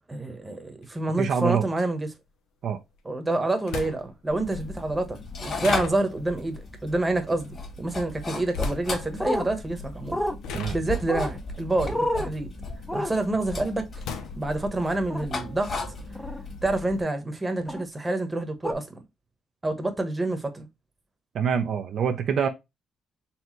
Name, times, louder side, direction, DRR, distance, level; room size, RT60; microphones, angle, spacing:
voice 1, 0.1-2.1 3.0-10.2 10.7-12.5 12.9-14.0 14.4-15.8 16.6-19.0 19.6-20.7, right 2 dB, 20° right, 1.0 m, -28 dB
sound 1, 0.8-0.9 2.9-3.0 3.6-4.3 5.6-6.4 8.5-9.0 9.9-10.1 10.4-12.8 13.2-14.8, left 5 dB, 85° left, 0.7 m, -36 dB
voice 2, 1.2-1.7 2.6-2.8 10.5-10.8 21.3-22.5, right 7 dB, 65° right, 0.6 m, -25 dB
sound 2, 4.3-17.0, left 2 dB, 45° left, 1.9 m, -36 dB
sound 3, 9.2-9.5 10.1-10.4 11.1-11.3 11.9-12.3 12.9-13.1 15.1-15.3 16.1-16.4 17.7-17.8 18.6-18.7, left 1 dB, 5° left, 0.6 m, -28 dB
4.2 x 3.3 x 3.0 m
cardioid pair, 90°, 0 cm